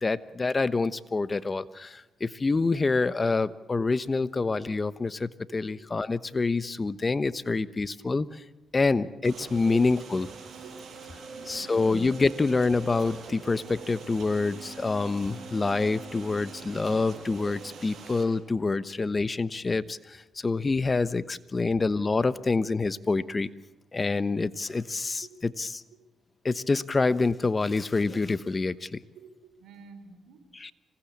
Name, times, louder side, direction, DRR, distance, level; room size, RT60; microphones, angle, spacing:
voice 1, 0.0-8.3 8.7-10.3 11.5-20.0 20.4-23.5 23.9-25.8 26.4-29.0 30.5-30.7, left 3 dB, 30° left, 15 dB, 1.1 m, -27 dB
voice 2, 8.7-9.1 10.6-10.7 11.3-11.8 25.2-25.4 29.1-30.4, right 6 dB, 80° right, 8 dB, 3.9 m, -49 dB
sound 1, 9.2-18.2, right 4 dB, 60° right, 6.1 m, -43 dB
26.0 x 19.0 x 8.6 m, 1.0 s
cardioid pair, 75°, 0 cm